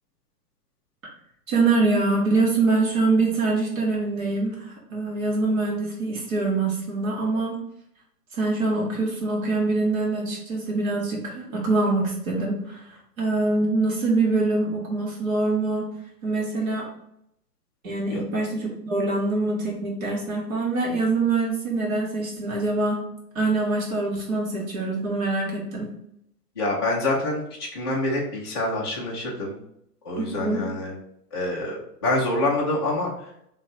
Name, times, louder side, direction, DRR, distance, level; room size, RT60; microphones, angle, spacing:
voice 1, 1.5-7.6 8.3-15.9 16.2-16.9 17.8-23.0 23.4-25.9 30.2-30.6, right 3 dB, 55° right, -1 dB, 1.8 m, -24 dB
voice 2, 26.6-27.4 27.7-29.6 30.0-31.0 31.3-33.1, left 2 dB, 20° left, -7 dB, 0.4 m, -26 dB
4.0 x 3.1 x 4.2 m, 0.74 s
figure-of-eight pair, 110°, 49 cm